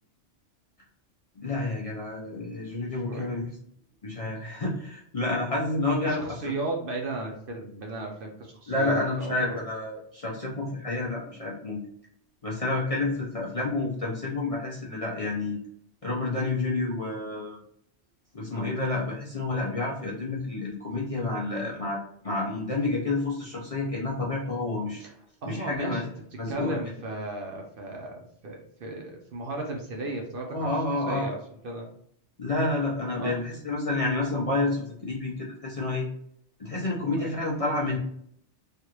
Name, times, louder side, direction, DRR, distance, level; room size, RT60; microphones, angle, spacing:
voice 1, 1.4-3.6 4.0-6.2 8.7-11.8 12.4-15.6 16.0-17.6 18.3-25.0 25.4-26.0 26.4-26.8 30.5-31.3 32.4-36.1 36.6-38.0, left 2 dB, 45° left, -4 dB, 0.5 m, -29 dB
voice 2, 3.1-3.4 6.0-9.6 11.4-11.5 25.0-25.1 25.4-30.7 31.1-31.4 31.6-31.9 33.2-33.4 37.2-37.3, right 2 dB, 55° right, 1 dB, 0.7 m, -35 dB
3.3 x 2.4 x 2.9 m, 0.67 s
omnidirectional pair, 1.2 m